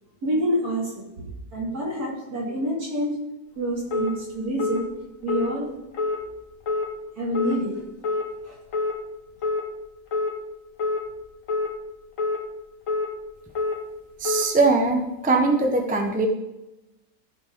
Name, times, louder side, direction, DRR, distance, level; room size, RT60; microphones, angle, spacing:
voice 1, 0.2-3.2 3.6-4.8 5.2-5.8 7.2-7.8 8.4-8.6, equal, 75° right, -4 dB, 3.2 m, -27 dB
sound 1, 3.9-4.1 4.6-4.8 5.3-5.5 5.9-6.2 6.7-6.9 7.3-7.6 8.0-8.3 8.7-8.9 9.4-9.6 10.1-10.3 10.8-11.0 11.5-11.7 12.2-12.4 12.9-13.1 13.6-13.8 14.3-14.5, left 3 dB, 60° left, 1.6 m, -25 dB
voice 2, 14.2-16.3, right 3 dB, 5° right, 3 dB, 0.7 m, -21 dB
14.5 x 5.5 x 3.8 m, 0.97 s
omnidirectional pair, 1.6 m